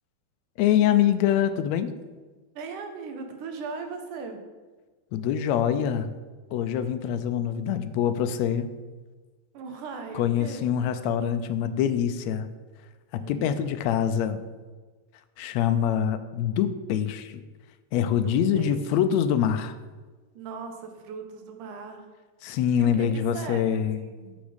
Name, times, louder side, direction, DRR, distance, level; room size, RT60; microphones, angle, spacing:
voice 1, 0.6-1.9 5.1-6.1 6.5-8.7 10.1-12.5 13.1-14.5 15.4-17.3 17.9-19.8 22.4-24.0, left 9 dB, 75° left, 10 dB, 1.7 m, -24 dB
voice 2, 2.6-4.4 9.5-10.7 13.2-13.7 18.1-18.8 20.3-22.1 22.7-24.4, right 4 dB, 80° right, 5 dB, 2.7 m, -39 dB
11.5 x 6.0 x 5.1 m, 1.4 s
omnidirectional pair, 3.6 m